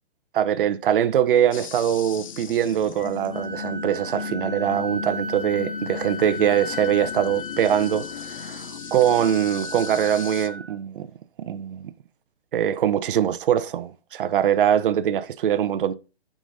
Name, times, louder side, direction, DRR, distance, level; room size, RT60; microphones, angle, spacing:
voice 1, 0.3-11.1 11.4-11.9 12.5-15.9, right 10 dB, 55° right, 0.6 m, -23 dB
sound 1, 1.5-10.5, left 6 dB, 35° left, 0.4 m, -36 dB
Wind instrument woodwind instrument, 2.9-10.7, left 2 dB, 50° left, 1.9 m, -36 dB
14.5 x 5.0 x 2.6 m
hypercardioid pair, 145°, 32 cm